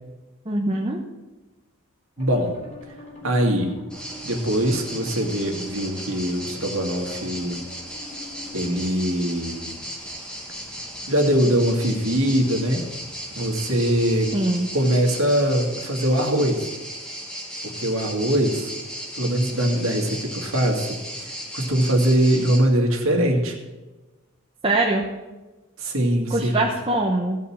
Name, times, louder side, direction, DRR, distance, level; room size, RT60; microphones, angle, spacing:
voice 1, 0.5-1.0 14.3-14.7 24.6-25.0 26.3-27.4, right 2 dB, 25° right, -1 dB, 0.9 m, -22 dB
sound 1, 2.2-8.9, left 1 dB, 35° left, 3.6 m, -45 dB
voice 2, 2.2-2.5 3.2-3.7 4.2-7.6 8.5-9.7 11.1-12.8 13.4-14.3 14.7-16.7 17.6-18.7 19.1-23.6 25.8-26.5, right 1 dB, 70° right, 1 dB, 2.1 m, -22 dB
sound 2, 3.9-22.6, equal, 5° left, 1.5 m, -36 dB
16.0 x 5.5 x 7.2 m, 1.2 s
head